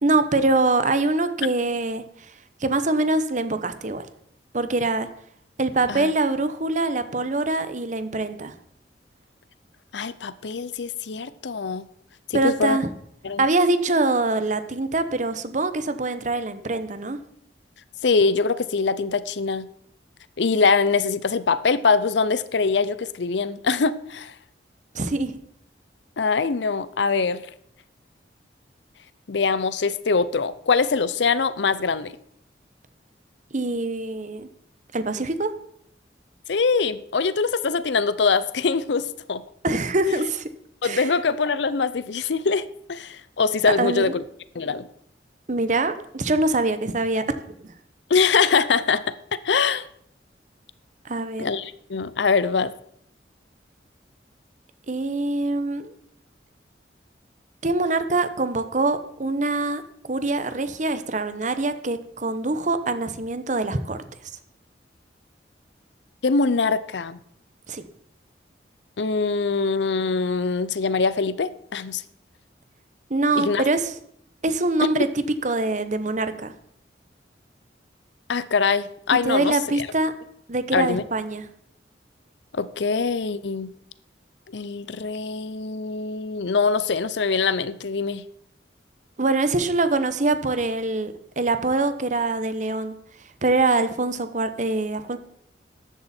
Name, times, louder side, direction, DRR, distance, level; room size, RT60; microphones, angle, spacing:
voice 1, 0.0-2.0 2.6-4.1 4.5-5.1 5.6-8.5 12.3-12.9 13.4-17.2 24.9-25.4 33.5-34.5 34.9-35.5 39.6-40.5 40.8-41.1 43.8-44.1 45.5-47.7 51.0-51.4 54.9-55.9 57.6-59.8 60.1-64.0 67.7-67.8 73.1-73.9 74.4-75.1 75.4-76.5 79.2-80.1 80.5-81.4 89.2-93.0 93.4-95.2, right 2 dB, 45° right, 11 dB, 1.0 m, -24 dB
voice 2, 9.9-11.9 12.3-12.8 13.2-13.4 18.0-19.7 20.4-24.3 26.2-27.4 29.3-32.1 36.5-39.4 40.8-44.2 44.5-44.9 48.1-49.1 49.4-49.8 51.4-52.7 66.2-67.2 69.0-72.0 73.4-73.7 78.3-79.9 80.7-81.0 82.5-83.7 84.5-88.2, left 4 dB, 80° left, 16 dB, 0.6 m, -23 dB
14.0 x 11.0 x 4.4 m, 0.70 s
head